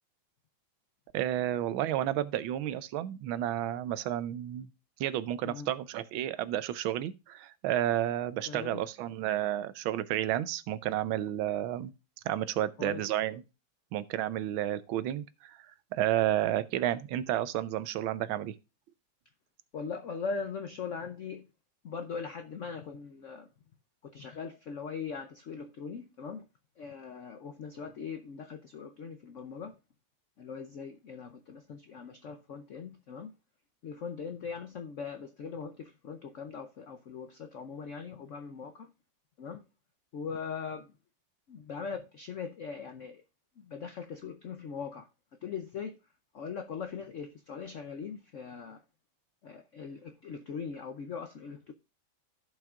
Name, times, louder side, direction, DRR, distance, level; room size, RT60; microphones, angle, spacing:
voice 1, 1.1-4.7 5.0-11.9 12.2-13.4 13.9-15.6 15.9-18.6, right 12 dB, 85° right, 1.4 m, -31 dB
voice 2, 8.5-8.8 12.8-13.0 19.7-21.5 21.8-23.5 24.0-26.5 26.8-29.8 30.4-33.3 33.8-38.9 39.4-39.6 40.1-40.9 41.5-43.2 43.6-45.1 45.4-46.0 46.3-48.8 49.4-51.7, left 5 dB, 80° left, 0.7 m, -40 dB
15.5 x 5.4 x 2.4 m
omnidirectional pair, 2.1 m